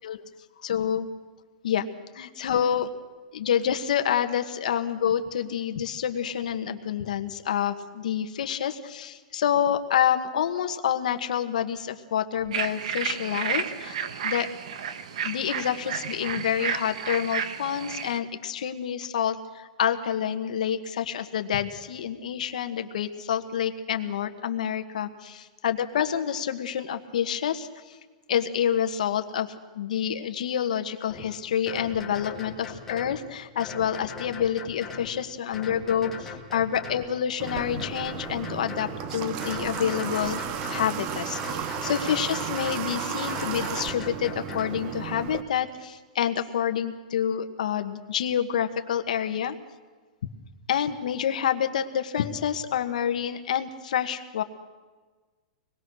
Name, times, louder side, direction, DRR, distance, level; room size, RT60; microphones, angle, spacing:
voice 1, 0.6-1.1 1.6-1.9 2.1-2.9 3.3-14.0 14.2-14.5 15.2-28.0 28.3-40.4 40.7-49.6 50.7-54.4, left 9 dB, 65° left, 8 dB, 1.4 m, -28 dB
sound 1, 12.5-18.2, right 8 dB, 55° right, 1.2 m, -32 dB
sound 2, 31.1-31.3 31.7-33.2 33.6-35.1 35.5-37.1 37.5-39.0 39.4-40.9 41.3-42.9 43.3-44.8, left 6 dB, 10° left, 1.8 m, -39 dB
Water / Water tap faucet, 37.4-45.4, right 8 dB, 25° right, 0.8 m, -33 dB
26.0 x 20.5 x 6.3 m, 1.4 s
supercardioid pair, 180°, 4 cm